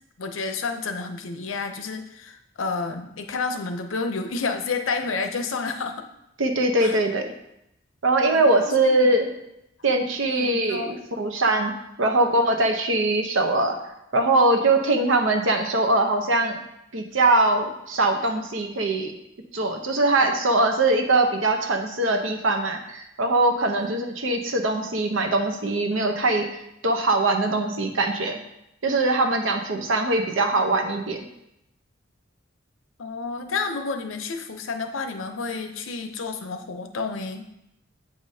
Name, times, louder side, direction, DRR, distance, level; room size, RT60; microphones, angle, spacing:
voice 1, 0.2-6.1 6.8-7.0 8.3-9.1 10.0-10.9 23.8-23.9 33.0-37.4, left 4 dB, 85° left, 7 dB, 0.6 m, -30 dB
voice 2, 6.4-7.2 8.0-9.3 9.8-13.8 14.1-16.6 16.9-19.1 19.5-26.5 26.8-28.4 28.8-31.2, right 2 dB, 75° right, 4 dB, 0.8 m, -22 dB
7.9 x 4.9 x 2.8 m, 0.83 s
head